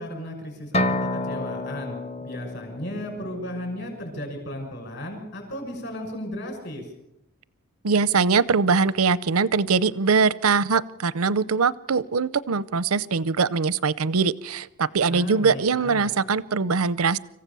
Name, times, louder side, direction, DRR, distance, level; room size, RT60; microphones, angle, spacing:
voice 1, 0.0-6.8 15.1-16.1, left 1 dB, 50° left, 4 dB, 6.2 m, -35 dB
sound 1, 0.7-4.5, left 1 dB, 30° left, 0.7 m, -30 dB
voice 2, 7.8-17.2, right 5 dB, 90° right, 19 dB, 0.7 m, -22 dB
26.0 x 15.5 x 7.0 m, 0.91 s
head